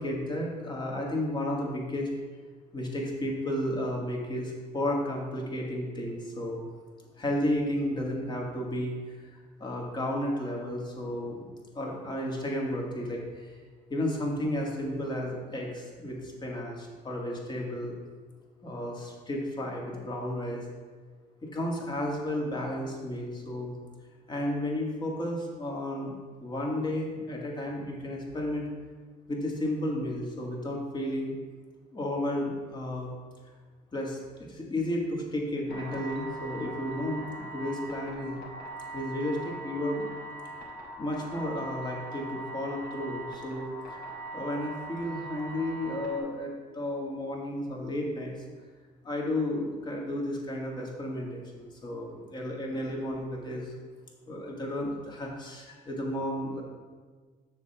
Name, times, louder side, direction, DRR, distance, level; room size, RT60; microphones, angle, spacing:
voice 1, 0.0-2.1 2.7-6.6 7.2-9.0 9.6-11.5 11.7-13.6 13.9-18.0 18.6-20.6 21.4-23.7 24.3-26.1 26.4-28.7 29.3-31.3 31.9-33.1 33.9-34.2 34.5-38.4 38.9-40.1 41.0-44.0 44.3-48.4 49.0-53.7 54.3-56.6, left 1 dB, 25° left, -1 dB, 1.8 m, -33 dB
sound 1, 35.7-46.2, right 2 dB, 65° left, 2.1 m, -41 dB
6.9 x 4.3 x 6.6 m, 1.4 s
cardioid pair, 110°, 17 cm